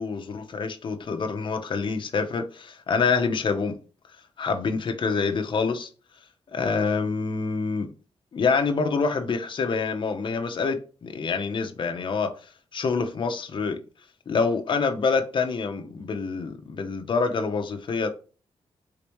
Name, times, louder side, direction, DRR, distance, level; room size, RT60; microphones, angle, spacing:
voice 1, 0.0-3.8 4.4-5.9 6.5-7.9 8.3-12.3 12.7-13.8 14.3-18.1, left 4 dB, 45° left, 0.7 m, -26 dB
4.9 x 3.5 x 3.0 m
wide cardioid pair, 175°, 11 cm